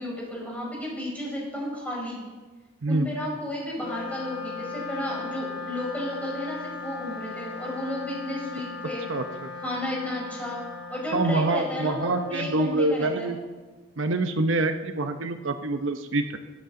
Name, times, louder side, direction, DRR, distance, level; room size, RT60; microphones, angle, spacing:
voice 1, 0.0-2.2 2.9-9.0 9.6-10.6 10.9-13.3, left 1 dB, 10° left, -5 dB, 5.2 m, -33 dB
Wind instrument woodwind instrument, 3.7-13.3, left 4 dB, 65° left, 3.1 m, -38 dB
voice 2, 9.1-9.5 11.1-13.4 14.0-16.4, right 2 dB, 85° right, 7 dB, 0.8 m, -26 dB
21.5 x 8.3 x 3.8 m, 1.3 s
head